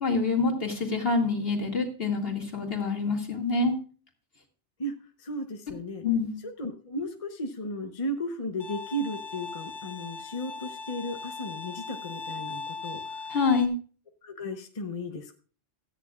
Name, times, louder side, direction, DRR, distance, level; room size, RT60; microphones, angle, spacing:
voice 1, 0.0-3.8 6.0-6.4 13.3-13.7, left 4 dB, 55° left, 0 dB, 2.5 m, -26 dB
voice 2, 5.2-6.0 6.6-13.3 14.2-15.4, equal, 35° left, 5 dB, 0.9 m, -35 dB
Bowed string instrument, 8.6-13.7, left 4 dB, 90° left, 1.5 m, -39 dB
16.5 x 13.5 x 2.4 m, 0.41 s
omnidirectional pair, 1.2 m